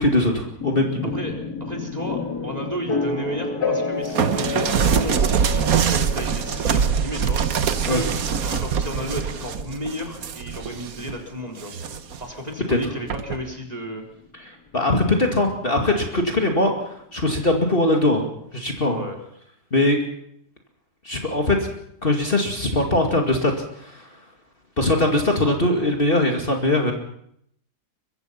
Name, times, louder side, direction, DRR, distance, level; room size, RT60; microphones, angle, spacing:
voice 1, 0.0-1.1 7.9-8.0 12.7-12.8 14.3-19.0 19.7-20.0 21.0-21.7 22.0-24.1 24.8-26.9, left 1 dB, 35° left, 2 dB, 2.5 m, -21 dB
sound 1, 0.6-14.4, left 3 dB, 80° left, 2.6 m, -32 dB
voice 2, 1.1-7.4 7.7-11.7 12.2-14.0 18.9-19.2, equal, 25° right, 2 dB, 4.1 m, -33 dB
sound 2, 4.2-11.1 11.6-12.2 13.1-13.4, right 7 dB, 65° right, 1.5 m, -23 dB
23.5 x 23.0 x 5.8 m, 0.71 s
omnidirectional pair, 1.6 m